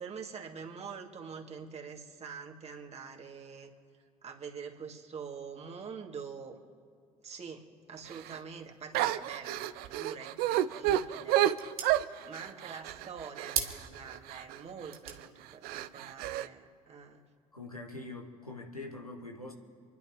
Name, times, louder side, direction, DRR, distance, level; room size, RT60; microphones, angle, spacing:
voice 1, 0.0-3.7 4.2-6.6 7.2-11.5 12.2-17.2, right 6 dB, 35° right, 1 dB, 2.5 m, -45 dB
sound 1, 8.1-8.4 8.9-14.6 15.1-15.2 15.6-16.5, right 13 dB, 55° right, 0.6 m, -31 dB
sound 2, 10.5-17.4, right 7 dB, 80° right, 1.3 m, -43 dB
voice 2, 17.5-19.5, left 2 dB, 90° left, 2 dB, 1.4 m, -43 dB
28.0 x 11.5 x 3.1 m, 2.3 s
figure-of-eight pair, 50°, 18 cm